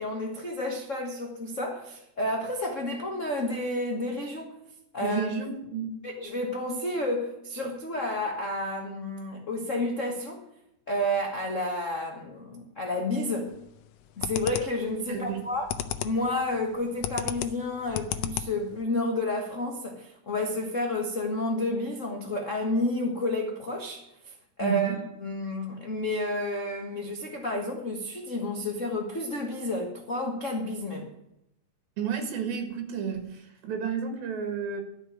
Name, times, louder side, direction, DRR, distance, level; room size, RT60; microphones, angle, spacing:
voice 1, 0.0-4.6 4.9-5.3 6.0-10.4 10.9-13.6 14.2-15.7 16.0-24.3 24.6-31.1, left 1 dB, 70° left, 0.7 m, -30 dB
voice 2, 5.0-5.9 15.1-15.5 24.6-25.0 32.0-34.8, right 7 dB, 85° right, 3.5 m, -31 dB
sound 1, 13.5-13.8 14.2-14.9 15.3-16.3 16.5-18.8, left 11 dB, 85° left, 2.4 m, -33 dB
12.5 x 6.3 x 9.0 m
omnidirectional pair, 4.1 m